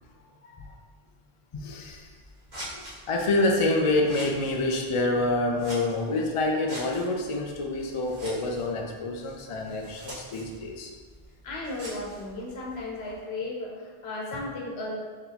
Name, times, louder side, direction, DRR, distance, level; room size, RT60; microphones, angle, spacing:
voice 1, 1.5-2.1 2.7-10.9, left 2 dB, 50° left, 2 dB, 0.4 m, -27 dB
Scissors, 1.8-13.2, equal, 45° right, 1.3 m, -46 dB
voice 2, 11.4-14.9, left 2 dB, 75° left, -3 dB, 1.1 m, -35 dB
4.0 x 3.6 x 2.9 m, 1.5 s
omnidirectional pair, 1.1 m